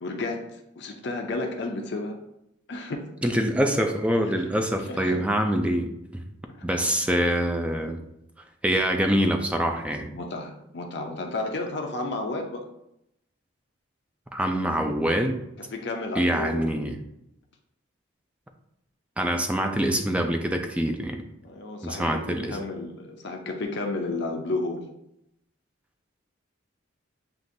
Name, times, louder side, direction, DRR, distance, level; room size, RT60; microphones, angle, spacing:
voice 1, 0.0-2.2 2.7-3.1 4.3-4.4 4.8-5.3 6.6-6.9 10.1-12.7 15.7-16.7 21.4-24.9, left 2 dB, 60° left, 3 dB, 0.6 m, -32 dB
voice 2, 3.2-6.2 6.6-8.0 8.6-10.1 14.3-15.4 16.2-17.0 19.2-21.2 21.8-22.6, equal, 5° right, 4 dB, 0.4 m, -25 dB
7.5 x 2.5 x 2.6 m, 0.81 s
head